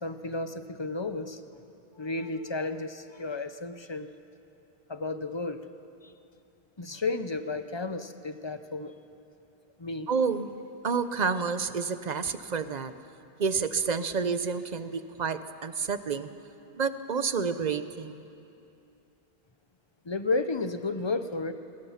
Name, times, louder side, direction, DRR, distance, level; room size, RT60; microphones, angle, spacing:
voice 1, 0.0-1.6 2.0-4.1 4.9-5.6 6.0-6.1 6.8-8.9 9.8-10.1 20.0-21.5, left 3 dB, 30° left, 10 dB, 0.8 m, -32 dB
voice 2, 10.1-10.5 10.8-12.9 13.4-16.3 16.7-18.2, right 5 dB, 45° right, 12 dB, 0.9 m, -29 dB
26.5 x 20.0 x 5.8 m, 2.8 s
omnidirectional pair, 1.1 m